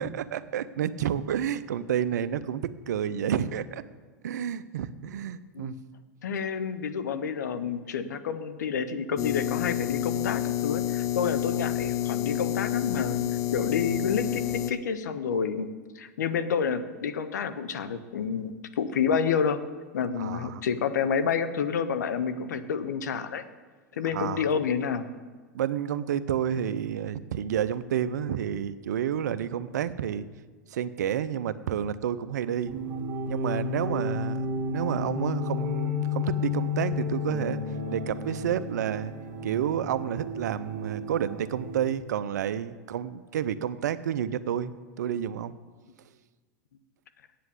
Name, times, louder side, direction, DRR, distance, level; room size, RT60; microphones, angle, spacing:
voice 1, 0.0-3.8 4.2-5.8 20.2-20.6 24.1-24.5 25.5-30.2 30.7-32.8 33.3-37.6 37.9-39.1 39.4-45.6, right 9 dB, 75° right, 14 dB, 0.6 m, -30 dB
voice 2, 6.2-13.2 13.5-15.7 16.0-19.6 19.9-23.4 24.0-25.0, left 6 dB, 80° left, 12 dB, 0.8 m, -29 dB
sound 1, 9.2-14.7, left 13 dB, 35° left, 0.6 m, -28 dB
sound 2, 32.7-41.8, left 3 dB, 45° right, 1.7 m, -32 dB
8.3 x 7.7 x 8.1 m, 1.4 s
hypercardioid pair, 105°, 9 cm